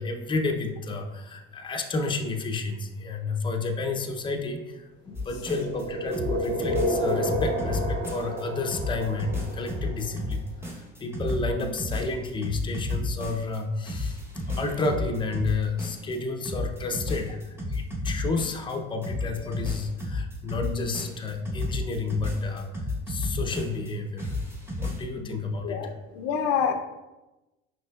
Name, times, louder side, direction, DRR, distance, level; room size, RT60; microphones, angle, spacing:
voice 1, 0.0-22.7 23.1-24.4 24.8-25.8, left 3 dB, 15° left, 4 dB, 0.5 m, -31 dB
sound 1, 5.1-5.8 6.1-8.4 8.7-13.6 13.8-16.2 16.4-18.7 19.0-23.9 24.2-25.0, left 2 dB, 10° right, 0.9 m, -32 dB
sound 2, 5.3-10.2, equal, 35° right, 1.2 m, -31 dB
voice 2, 25.6-26.7, left 7 dB, 75° left, 7 dB, 0.5 m, -28 dB
5.4 x 2.9 x 2.2 m, 1.0 s
supercardioid pair, 80°, 32 cm